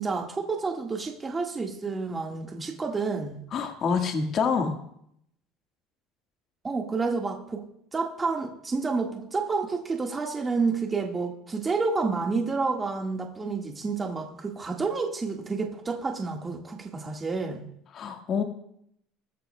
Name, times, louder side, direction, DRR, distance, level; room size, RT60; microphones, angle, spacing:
voice 1, 0.0-3.4 6.6-7.6 7.9-17.6, right 4 dB, 20° right, 1 dB, 1.6 m, -29 dB
voice 2, 3.5-4.8 17.9-18.4, left 5 dB, 40° left, 3 dB, 1.5 m, -26 dB
20.0 x 14.5 x 2.2 m, 0.72 s
supercardioid pair, 125°, 0 cm